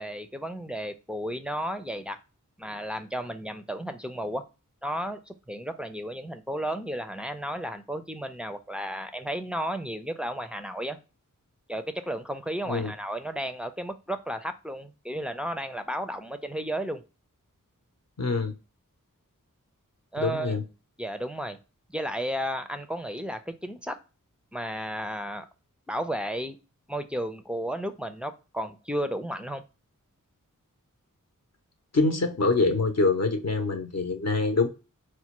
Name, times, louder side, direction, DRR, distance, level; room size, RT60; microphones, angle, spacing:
voice 1, 0.0-2.2 2.6-4.4 4.8-11.0 11.7-17.0 20.1-20.5 21.0-21.6 21.9-24.0 24.5-25.5 25.9-26.6 26.9-29.6, equal, 5° right, 0.4 m, -33 dB
voice 2, 18.2-18.5 20.2-20.6 31.9-34.7, left 3 dB, 50° left, 0.8 m, -25 dB
4.2 x 2.1 x 2.9 m
wide cardioid pair, 50°, 33 cm